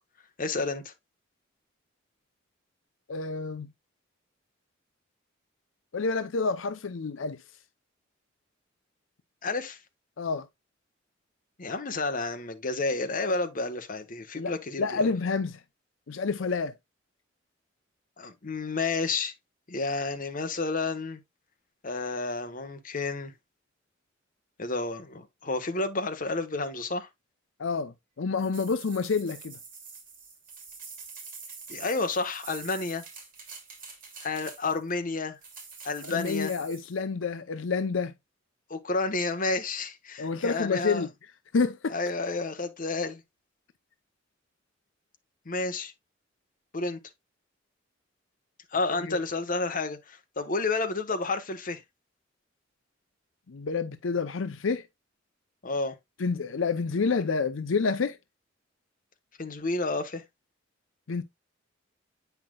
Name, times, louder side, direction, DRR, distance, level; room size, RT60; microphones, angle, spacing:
voice 1, 0.4-0.9 9.4-9.8 11.6-15.1 18.2-19.3 19.7-21.2 21.8-23.3 24.6-27.1 31.7-33.0 34.2-35.4 35.8-36.5 38.7-41.1 41.9-43.2 45.4-45.9 46.7-47.0 48.7-51.8 55.6-55.9 59.4-60.2, left 3 dB, 45° left, 1.1 m, -30 dB
voice 2, 3.1-3.7 5.9-7.4 10.2-10.5 14.3-14.5 14.8-15.6 16.1-16.7 27.6-29.6 36.1-38.1 40.2-41.1 41.5-41.9 49.0-49.2 53.5-54.8 56.2-58.2 61.1-61.2, left 4 dB, 80° left, 0.6 m, -28 dB
sound 1, 28.4-34.9 35.4-36.9, right 5 dB, 45° right, 2.9 m, -46 dB
8.9 x 5.8 x 2.3 m
head